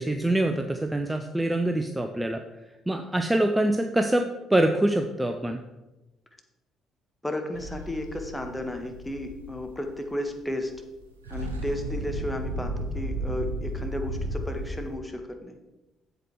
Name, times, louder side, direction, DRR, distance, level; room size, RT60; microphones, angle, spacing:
voice 1, 0.0-2.4 2.9-5.6, right 1 dB, 10° right, 5 dB, 0.8 m, -25 dB
voice 2, 7.2-10.7 11.3-15.6, left 1 dB, 10° left, 4 dB, 1.6 m, -33 dB
sound 1, 7.5-10.4 10.7-10.9 11.1-15.0, right 1 dB, 85° right, 0.9 m, -34 dB
7.9 x 7.8 x 4.7 m, 1.0 s
figure-of-eight pair, 45°, 0 cm